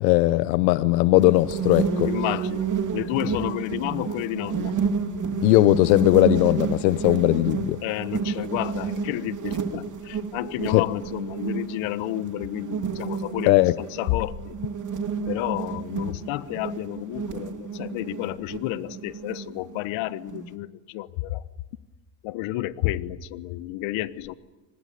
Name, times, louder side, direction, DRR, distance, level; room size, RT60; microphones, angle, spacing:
voice 1, 0.0-2.1 5.4-7.8 10.7-10.8 13.5-13.7, left 19 dB, 85° left, 15 dB, 0.8 m, -19 dB
sound 1, 1.2-20.5, right 6 dB, 35° right, 2.9 m, -30 dB
voice 2, 2.0-4.8 7.8-14.6 15.2-21.4 22.2-24.3, left 15 dB, 65° left, 15 dB, 1.3 m, -31 dB
25.5 x 20.5 x 9.5 m, 1.2 s
supercardioid pair, 90°, 50 cm